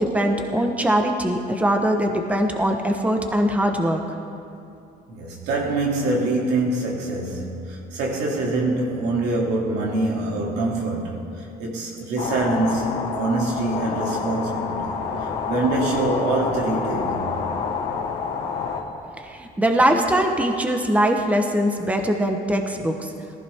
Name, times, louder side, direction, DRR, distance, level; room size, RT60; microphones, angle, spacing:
voice 1, 0.0-4.0 19.2-23.1, right 1 dB, 10° right, 4 dB, 1.1 m, -21 dB
voice 2, 5.1-14.9 15.2-17.3, right 2 dB, 90° right, -2 dB, 2.7 m, -25 dB
sound 1, 12.2-18.8, left 5 dB, 75° left, 1.8 m, -28 dB
18.5 x 15.0 x 3.6 m, 2.5 s
cardioid pair, 110°, 17 cm